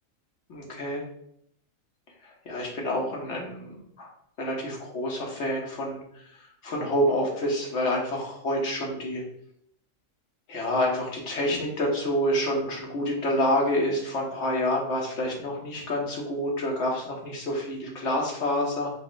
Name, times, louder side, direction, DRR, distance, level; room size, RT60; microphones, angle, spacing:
voice 1, 0.5-1.0 2.2-4.1 4.4-9.2 10.5-18.9, left 1 dB, 60° left, -1 dB, 1.4 m, -28 dB
5.0 x 2.1 x 4.7 m, 0.71 s
omnidirectional pair, 1.4 m